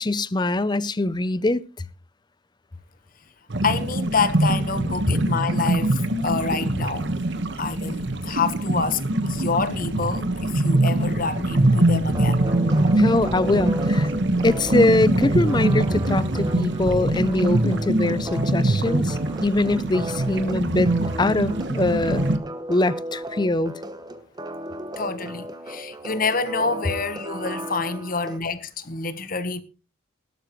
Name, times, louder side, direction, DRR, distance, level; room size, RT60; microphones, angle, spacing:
voice 1, 0.0-1.6 13.0-14.1 14.4-20.9 21.2-22.3 22.7-23.8, left 2 dB, 20° left, 0.5 m, -22 dB
sound 1, 3.5-22.4, right 1 dB, 60° right, 1.4 m, -23 dB
voice 2, 3.6-7.1 7.6-9.0 9.3-12.5 25.0-29.6, left 4 dB, 45° left, 1.2 m, -27 dB
sound 2, 12.1-28.4, right 1 dB, 20° right, 1.1 m, -35 dB
17.5 x 12.5 x 3.1 m
head